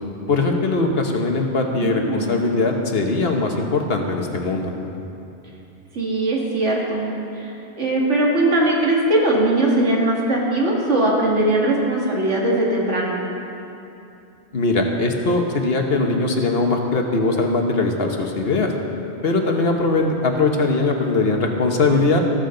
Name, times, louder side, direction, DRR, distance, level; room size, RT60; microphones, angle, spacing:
voice 1, 0.3-4.7 14.5-18.7 19.2-22.2, left 3 dB, 60° left, 2 dB, 1.3 m, -20 dB
voice 2, 1.8-2.4 5.9-7.1 7.8-13.1, right 1 dB, 85° right, -3 dB, 2.4 m, -20 dB
14.5 x 14.0 x 3.9 m, 2.9 s
omnidirectional pair, 1.2 m